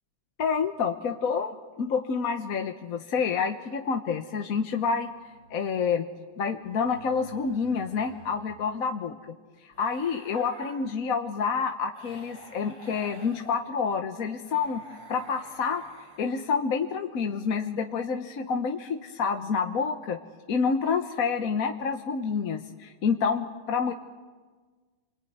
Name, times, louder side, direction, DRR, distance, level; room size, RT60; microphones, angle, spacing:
voice 1, 0.4-5.1 5.5-6.1 6.4-9.2 9.6-14.8 15.1-15.8 16.2-20.2 20.5-23.9, left 5 dB, 50° left, 4 dB, 1.2 m, -28 dB
sound 1, 5.1-5.6 6.6-8.6 9.7-10.7 11.9-13.5 14.4-16.5, right 1 dB, 85° right, 8.3 m, -49 dB
28.5 x 22.0 x 9.4 m, 1.4 s
omnidirectional pair, 2.3 m